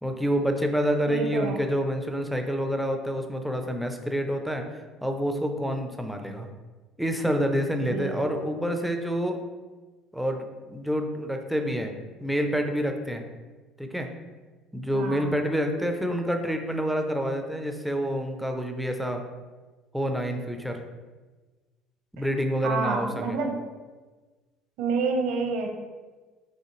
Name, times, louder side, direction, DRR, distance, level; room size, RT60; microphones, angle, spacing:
voice 1, 0.0-4.6 5.0-6.5 7.0-9.4 10.1-13.2 13.8-14.1 14.7-19.2 19.9-20.8 22.1-23.4, equal, ahead, 4 dB, 0.4 m, -28 dB
voice 2, 1.1-1.6 7.9-8.2 14.9-15.4 22.6-23.6 24.8-25.7, right 4 dB, 70° right, 3 dB, 0.8 m, -28 dB
5.6 x 3.1 x 3.1 m, 1.3 s
cardioid pair, 155°, 0 cm